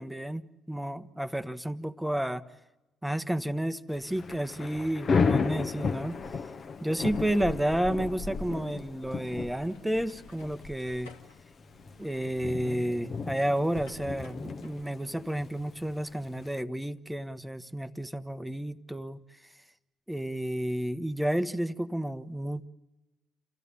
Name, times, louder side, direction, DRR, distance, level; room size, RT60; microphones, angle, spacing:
voice 1, 0.0-2.4 3.0-6.2 6.8-11.1 12.0-19.2 20.1-22.7, right 1 dB, 5° right, 11 dB, 1.0 m, -31 dB
Thunder / Rain, 4.0-16.6, left 5 dB, 40° left, 1.1 m, -34 dB
sound 1, 8.4-14.8, left 2 dB, 75° left, 1.8 m, -54 dB
29.0 x 15.0 x 8.5 m, 1.0 s
figure-of-eight pair, 45°, 0 cm